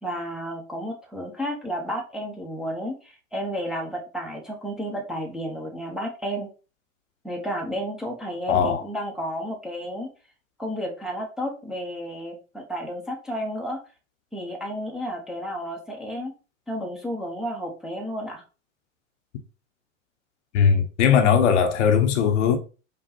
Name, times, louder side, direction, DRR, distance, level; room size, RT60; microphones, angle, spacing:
voice 1, 0.0-6.5 7.2-10.1 10.6-13.8 14.3-16.3 16.7-18.4, equal, ahead, 0.9 m, -32 dB
voice 2, 8.5-8.8 20.5-22.6, left 7 dB, 55° left, 1.0 m, -19 dB
5.4 x 2.4 x 4.2 m
figure-of-eight pair, 95°, 41 cm